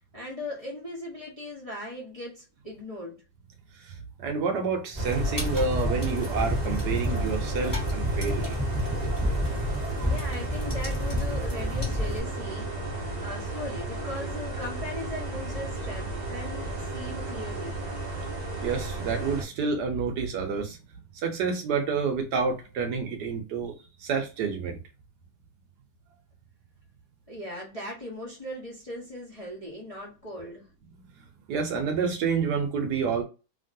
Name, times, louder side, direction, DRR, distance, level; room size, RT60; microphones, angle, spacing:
voice 1, 0.1-3.2 10.0-12.8 13.2-17.8 27.3-30.7, left 1 dB, 30° left, 0.6 m, -38 dB
voice 2, 3.8-8.6 10.0-10.1 18.6-20.8 21.1-23.7 24.0-24.8 31.5-33.2, right 5 dB, 70° right, 1.1 m, -29 dB
sound 1, 4.9-12.2, left 1 dB, 15° left, 1.1 m, -29 dB
sound 2, 5.0-19.4, right 2 dB, 40° right, 0.5 m, -34 dB
2.9 x 2.9 x 2.6 m
omnidirectional pair, 2.0 m